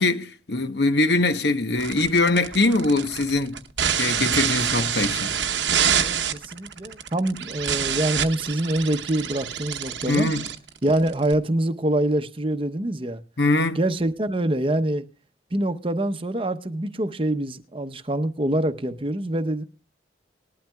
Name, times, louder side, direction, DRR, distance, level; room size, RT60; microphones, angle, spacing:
voice 1, 0.0-3.6 4.0-5.3 10.1-10.5 13.4-13.8, left 2 dB, 65° left, 1.0 m, -22 dB
sound 1, 1.8-11.3, right 8 dB, 85° right, 0.9 m, -26 dB
voice 2, 6.0-10.3 10.8-13.2 13.7-15.0 15.5-19.6, right 1 dB, 30° right, 0.8 m, -25 dB
19.5 x 12.0 x 2.3 m
head